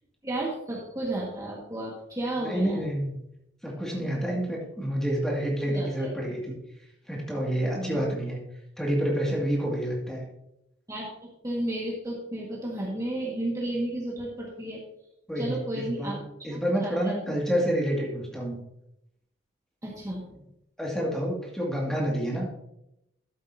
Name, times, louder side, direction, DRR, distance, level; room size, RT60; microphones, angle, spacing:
voice 1, 0.2-2.9 5.7-5.9 7.7-8.0 10.9-11.1 11.4-14.8 15.3-16.2 16.5-17.1 19.8-20.5, right 1 dB, 20° right, -4 dB, 1.7 m, -32 dB
voice 2, 2.4-3.2 3.6-6.6 7.1-8.4 8.8-10.3 15.3-16.2 16.4-18.6 20.8-22.5, equal, 5° left, -3 dB, 2.1 m, -28 dB
13.0 x 7.8 x 2.7 m, 0.82 s
head